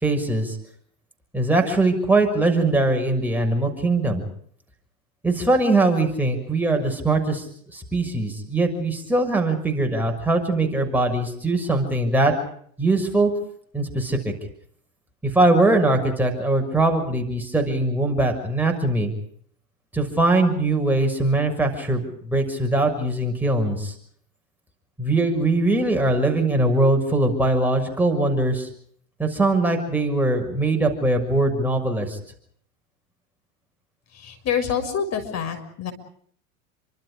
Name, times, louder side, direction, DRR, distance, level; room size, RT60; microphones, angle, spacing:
voice 1, 0.0-0.6 1.3-4.2 5.2-7.4 7.7-12.3 12.8-13.3 13.7-14.3 15.2-19.1 19.9-23.9 25.0-28.7 29.2-32.2, right 2 dB, 5° right, 2 dB, 6.3 m, -21 dB
voice 2, 34.1-35.9, left 7 dB, 40° left, 8 dB, 6.5 m, -27 dB
29.5 x 25.5 x 5.1 m, 0.62 s
hypercardioid pair, 105°, 41 cm